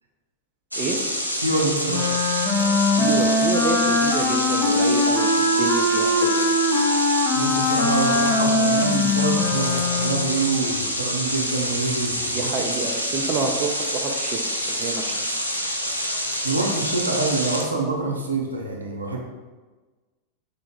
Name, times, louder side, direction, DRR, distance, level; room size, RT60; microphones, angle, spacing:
sound 1, 0.7-17.6, equal, 85° left, 0.4 m, -27 dB
voice 1, 1.4-2.2 7.3-12.5 16.4-19.2, right 3 dB, 80° right, 0 dB, 0.6 m, -26 dB
Wind instrument woodwind instrument, 1.9-10.4, left 2 dB, 30° left, 0.6 m, -21 dB
voice 2, 2.8-6.5 12.3-14.4 14.7-15.1, right 4 dB, 30° right, 2 dB, 0.4 m, -28 dB
4.4 x 2.0 x 3.3 m, 1.3 s
figure-of-eight pair, 90°, 0 cm